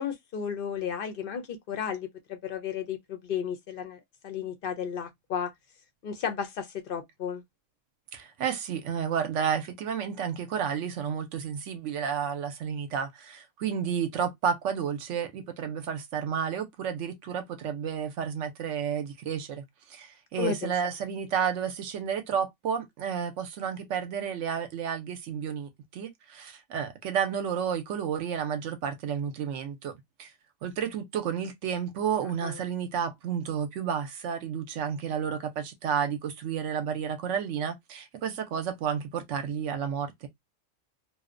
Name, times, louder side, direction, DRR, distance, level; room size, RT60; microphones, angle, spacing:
voice 1, 0.0-5.5 6.0-7.4 20.4-20.7 32.4-32.6, left 7 dB, 65° left, 0.5 m, -33 dB
voice 2, 8.1-30.3 30.6-40.3, right 7 dB, 70° right, 0.9 m, -31 dB
2.6 x 2.0 x 2.4 m
omnidirectional pair, 1.4 m